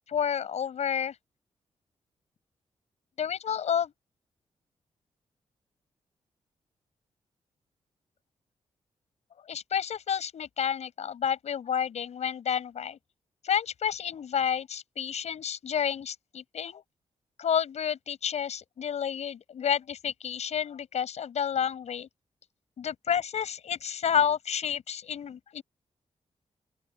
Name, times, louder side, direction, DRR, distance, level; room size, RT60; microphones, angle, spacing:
voice 1, 0.1-1.2 3.2-3.9 9.5-13.0 13.4-16.8 17.4-22.1 22.8-25.6, left 8 dB, 75° left, 6.3 m, -30 dB
open air
cardioid pair, 105°, 11 cm